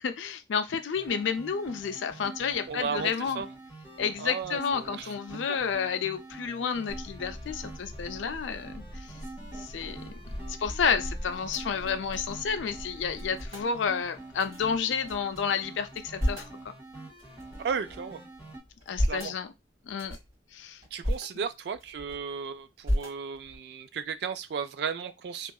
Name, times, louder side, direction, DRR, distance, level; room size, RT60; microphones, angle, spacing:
voice 1, 0.0-3.4 4.0-9.1 9.5-10.0 10.6-16.5 18.9-19.5 19.9-20.2 20.5-20.8, left 6 dB, 85° left, 0.4 m, -30 dB
sound 1, 0.9-18.6, right 2 dB, 15° right, 1.5 m, -46 dB
voice 2, 2.7-3.5 4.2-5.1 5.5-5.6 17.6-18.2 19.1-19.3 20.9-25.5, right 6 dB, 60° right, 0.3 m, -34 dB
sound 2, 6.9-13.4, equal, 25° left, 0.5 m, -45 dB
sound 3, 8.7-12.5 12.7-12.8 13.1-13.7 14.4-15.4 15.8-16.6 17.2-18.1 18.6-19.4 19.9-20.3 20.8-21.3 21.7-22.4 22.8-23.6, equal, 35° right, 1.8 m, -34 dB
2.7 x 2.4 x 2.3 m
head